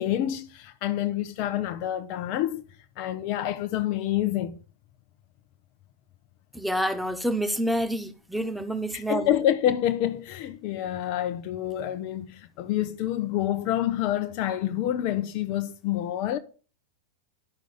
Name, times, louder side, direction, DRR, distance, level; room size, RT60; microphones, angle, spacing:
voice 1, 0.0-2.6 3.0-4.6 8.9-16.4, left 12 dB, 45° left, 1.0 m, -27 dB
voice 2, 6.5-9.4, right 1 dB, ahead, 1.5 m, -28 dB
12.0 x 6.3 x 6.9 m
figure-of-eight pair, 90°, 0 cm